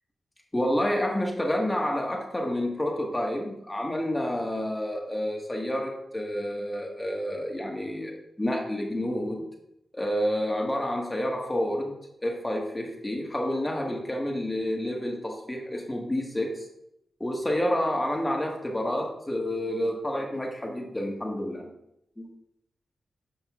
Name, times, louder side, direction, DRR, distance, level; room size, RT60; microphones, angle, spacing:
voice 1, 0.5-8.1 8.4-9.5 9.9-16.7 17.2-21.7 22.2-22.3, left 1 dB, 20° left, 0 dB, 1.6 m, -29 dB
11.0 x 6.2 x 2.5 m, 0.81 s
cardioid pair, 60°, 0 cm